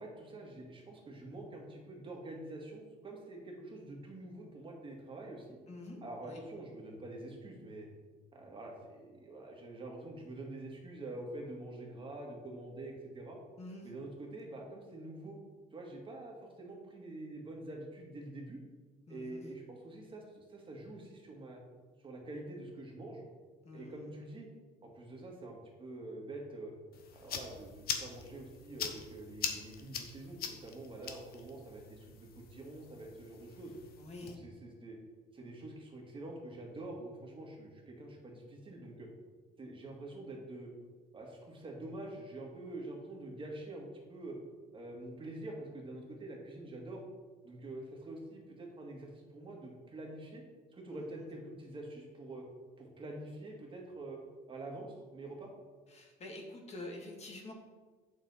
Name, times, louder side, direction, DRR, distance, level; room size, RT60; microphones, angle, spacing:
voice 1, 0.0-5.5 6.0-7.9 8.3-13.4 13.8-15.4 15.7-18.6 19.1-21.6 22.0-23.2 23.7-24.5 24.8-26.7 27.1-33.7 34.4-35.0 35.3-39.1 39.6-40.7 41.1-44.4 44.7-47.0 47.4-50.4 50.7-52.4 52.8-54.2 54.5-55.5, right 2 dB, 30° right, 0 dB, 2.0 m, -46 dB
voice 2, 5.7-6.4 13.6-13.9 19.1-19.4 23.6-24.1 34.0-34.4 50.9-51.3 55.9-57.5, left 2 dB, 40° left, 0 dB, 1.9 m, -47 dB
sound 1, 26.9-34.3, left 7 dB, 65° left, 1.1 m, -43 dB
8.6 x 6.9 x 4.2 m, 1.4 s
cardioid pair, 110°, 17 cm